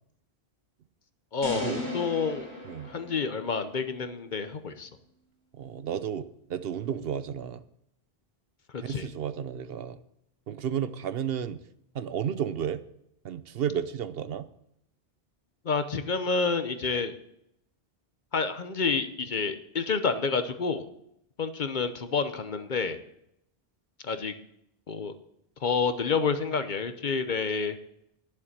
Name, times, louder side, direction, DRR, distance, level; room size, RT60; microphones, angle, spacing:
voice 1, 1.3-2.5 2.8-4.9 8.7-9.1 15.6-17.2 18.3-20.8 21.4-23.0 24.0-24.3 24.9-25.1 25.6-27.8, left 5 dB, 50° left, 9 dB, 0.9 m, -29 dB
sound 1, 1.4-3.7, left 1 dB, 15° right, 4.4 m, -37 dB
voice 2, 5.5-7.6 8.8-10.0 10.5-11.6 11.9-12.8 13.2-14.4, right 8 dB, 65° right, 12 dB, 0.8 m, -32 dB
11.0 x 7.0 x 7.3 m, 0.77 s
omnidirectional pair, 1.1 m